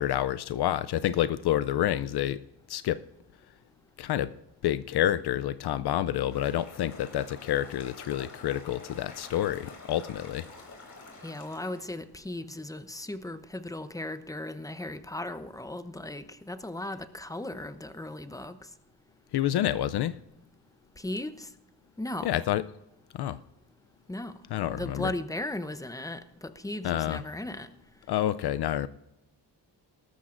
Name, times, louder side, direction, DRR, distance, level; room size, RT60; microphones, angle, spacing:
voice 1, 0.0-2.4 2.7-3.0 4.0-4.3 4.6-10.5 19.3-20.2 22.2-22.6 23.1-23.4 24.5-25.1 26.8-27.2 28.1-28.9, left 12 dB, 65° left, 0.5 m, -28 dB
sound 1, 6.3-11.8, left 3 dB, 45° left, 3.9 m, -48 dB
voice 2, 11.2-18.6 21.0-21.5 22.0-22.4 24.1-24.4 24.7-27.7, left 1 dB, 10° left, 0.7 m, -37 dB
18.5 x 13.5 x 2.5 m
cardioid pair, 105°, 42 cm